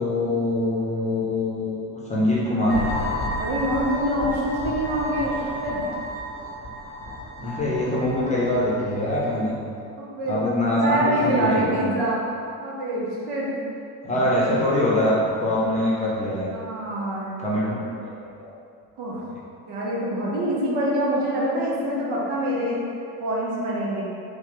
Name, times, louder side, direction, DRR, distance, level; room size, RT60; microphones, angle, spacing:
voice 1, 0.0-1.8 2.1-2.9 7.4-9.5 10.3-11.7 14.0-16.5 17.4-17.7, left 1 dB, 15° left, -7 dB, 0.8 m, -23 dB
sound 1, 2.7-9.4, left 1 dB, 45° left, 0.9 m, -32 dB
voice 2, 3.4-5.4 5.6-5.8 10.0-12.2 12.6-13.5 14.1-14.2 16.5-17.5 19.0-19.3 19.7-22.8 23.2-24.0, right 1 dB, 55° right, -5 dB, 0.9 m, -25 dB
3.6 x 2.4 x 3.8 m, 2.6 s
figure-of-eight pair, 50°, 48 cm